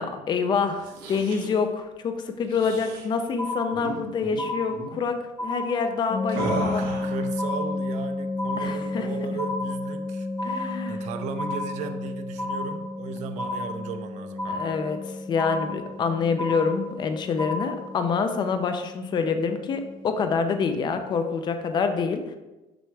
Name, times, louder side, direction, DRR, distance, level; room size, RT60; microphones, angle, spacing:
voice 1, 0.0-6.8 8.6-9.1 10.4-11.1 14.5-22.2, left 5 dB, 30° left, 7 dB, 0.5 m, -26 dB
sound 1, 0.7-1.6 2.5-3.1 3.7-3.9 4.2-4.4 4.7-5.0 6.3-7.2, right 3 dB, 85° right, 1.6 m, -35 dB
sound 2, 3.4-4.1 4.4-5.1 5.4-6.1 6.4-7.1 7.4-8.1 8.4-9.1 9.4-10.1 10.4-11.1 11.4-12.1 12.4-13.1 13.4-14.1 14.4-15.1 15.4-16.1 16.4-17.1 17.4-18.1, left 1 dB, 15° left, 1.0 m, -33 dB
sound 3, 6.1-21.0, left 2 dB, 65° left, 1.5 m, -33 dB
voice 2, 6.4-14.7, right 6 dB, 55° right, 8 dB, 0.6 m, -36 dB
6.2 x 5.6 x 3.3 m, 1.1 s
cardioid pair, 165°, 14 cm